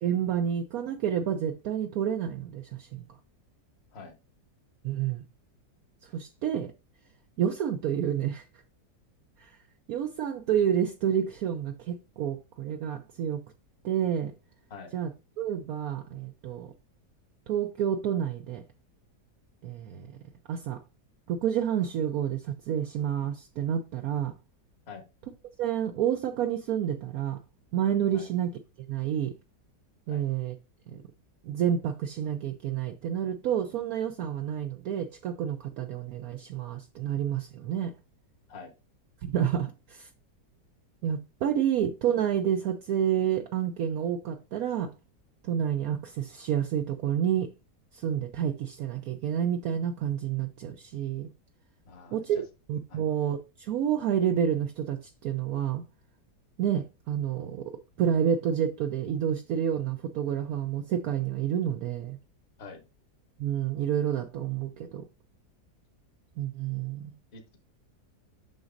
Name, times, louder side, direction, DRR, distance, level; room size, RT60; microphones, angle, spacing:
voice 1, 0.0-3.0 4.8-5.2 6.0-6.7 7.4-8.5 9.4-9.6 9.9-13.4 13.8-14.3 14.9-15.1 15.4-16.7 17.5-18.6 19.6-20.1 20.5-20.8 21.3-24.4 25.6-27.4 27.7-28.5 28.8-29.3 30.1-30.6 30.9-31.0 31.4-37.9 39.2-40.1 41.0-44.9 45.4-47.5 47.9-51.3 52.1-52.4 52.7-55.8 56.6-62.2 63.4-65.0 66.4-67.1, right 9 dB, 70° right, 1.0 m, -29 dB
voice 2, 51.9-52.2 52.9-53.0 62.6-62.8 67.3-67.6, left 5 dB, 40° left, 1.3 m, -45 dB
7.9 x 6.0 x 2.5 m
omnidirectional pair, 1.8 m